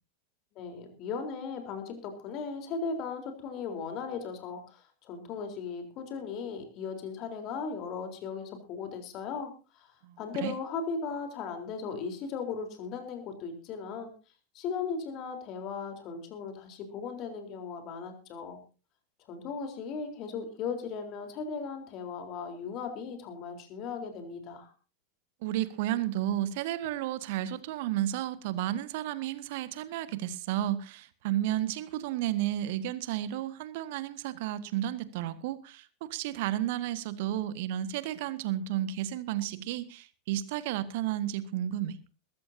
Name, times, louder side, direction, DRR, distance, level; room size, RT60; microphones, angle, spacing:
voice 1, 0.6-14.1 14.5-18.6 19.3-24.7, left 5 dB, 35° left, 5 dB, 3.9 m, -37 dB
voice 2, 10.0-10.5 25.4-42.0, right 12 dB, 50° right, 13 dB, 1.6 m, -32 dB
21.5 x 14.0 x 2.8 m, 0.34 s
figure-of-eight pair, 90°, 0 cm